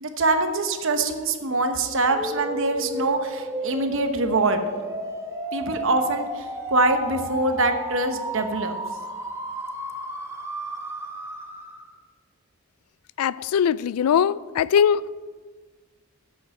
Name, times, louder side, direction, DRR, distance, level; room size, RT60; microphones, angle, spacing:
voice 1, 0.0-4.6 5.5-8.7, right 2 dB, 55° right, 1.0 m, -24 dB
sound 1, 2.1-11.9, right 2 dB, 10° right, 1.0 m, -33 dB
voice 2, 13.2-15.0, left 8 dB, 80° left, 0.3 m, -21 dB
8.2 x 7.1 x 8.6 m
head